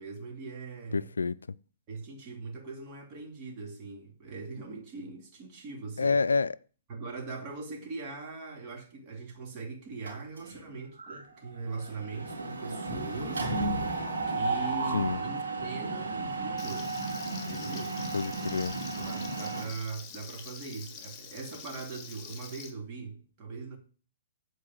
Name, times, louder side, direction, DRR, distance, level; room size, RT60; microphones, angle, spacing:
voice 1, 0.0-1.1 1.9-6.2 6.9-13.5 14.0-16.9 17.4-18.0 19.0-23.8, right 4 dB, 35° right, 2.6 m, -41 dB
voice 2, 0.9-1.4 6.0-6.6 14.9-15.2 18.1-18.8, left 4 dB, 80° left, 0.3 m, -28 dB
Mechanisms, 10.1-10.7 11.0-11.2 11.5-19.6, right 3 dB, 75° right, 3.2 m, -33 dB
Frying (food), 16.6-22.7, left 6 dB, 25° left, 1.6 m, -46 dB
8.6 x 4.7 x 7.5 m
figure-of-eight pair, 120°, 0 cm